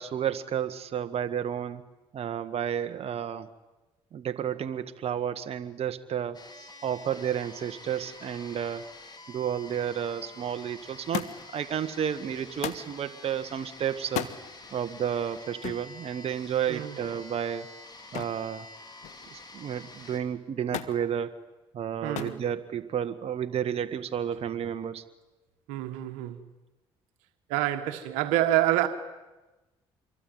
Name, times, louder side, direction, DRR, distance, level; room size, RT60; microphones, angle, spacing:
voice 1, 0.0-1.8 2.1-3.5 4.1-8.9 9.3-11.3 11.5-14.3 14.7-17.7 18.1-18.7 19.3-21.4 21.7-25.0, right 9 dB, 55° right, 1.6 m, -31 dB
sound 1, 6.3-20.2, left 2 dB, 35° left, 5.1 m, -48 dB
Thump thud, 11.1-11.6 12.6-12.9 14.0-14.4 15.6-15.9 18.1-18.5 18.8-19.4 20.7-21.0 22.1-22.4 23.4-23.8 24.8-24.9, left 12 dB, 75° left, 1.5 m, -35 dB
voice 2, 22.0-22.4 25.7-26.4 27.5-28.9, right 14 dB, 85° right, 1.7 m, -27 dB
26.5 x 23.0 x 9.3 m
supercardioid pair, 65°, 12 cm